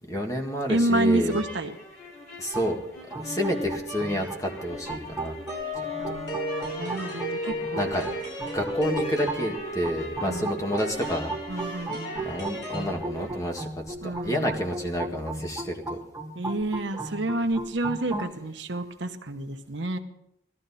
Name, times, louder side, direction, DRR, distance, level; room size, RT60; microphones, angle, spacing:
voice 1, 0.1-1.4 2.4-2.8 3.2-5.4 7.7-8.1 8.5-11.9 12.2-16.0, equal, 15° left, 2 dB, 1.7 m, -29 dB
voice 2, 0.7-1.7 6.0-8.0 10.2-10.6 11.5-12.2 14.0-14.6 16.3-20.0, right 1 dB, 65° right, 7 dB, 1.1 m, -29 dB
sound 1, 1.3-13.5, equal, 50° left, 4.2 m, -40 dB
sound 2, 2.5-18.3, right 3 dB, 10° right, 1.2 m, -37 dB
sound 3, 5.5-12.9, left 1 dB, 65° left, 7.3 m, -35 dB
18.0 x 13.5 x 4.2 m, 0.77 s
head